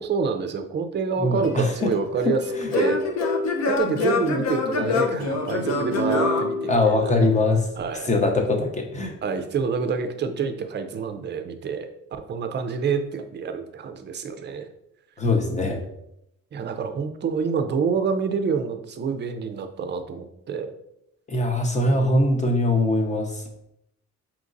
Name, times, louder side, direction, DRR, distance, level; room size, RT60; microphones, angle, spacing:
voice 1, 0.0-2.4 2.7-3.0 3.6-7.1 7.8-8.1 9.2-14.7 16.5-20.7 21.9-22.1, right 5 dB, 40° right, 8 dB, 0.4 m, -27 dB
voice 2, 1.2-1.9 2.2-2.7 6.7-7.7 8.0-9.2 15.2-15.8 21.3-23.4, left 2 dB, 25° left, 3 dB, 0.6 m, -22 dB
Singing / Plucked string instrument, 1.4-7.3, left 3 dB, 65° left, 0.7 m, -26 dB
5.1 x 2.9 x 2.5 m, 0.79 s
cardioid pair, 145°, 29 cm